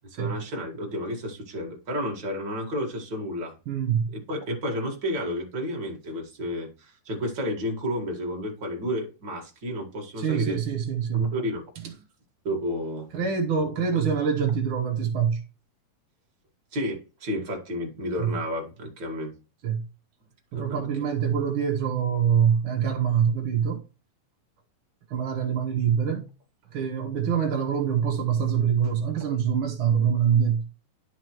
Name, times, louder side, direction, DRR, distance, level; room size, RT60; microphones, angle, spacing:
voice 1, 0.1-3.5 4.1-10.6 11.1-11.6 12.4-13.1 13.6-14.0 16.7-19.3 20.5-21.0, equal, 40° right, 2.1 m, -31 dB
voice 2, 3.7-4.1 10.2-11.3 11.8-11.9 13.1-15.4 18.2-18.3 19.6-19.8 20.5-23.8 25.1-26.3 26.7-30.6, right 7 dB, 75° right, 1.1 m, -25 dB
11.0 x 4.9 x 3.1 m
omnidirectional pair, 4.0 m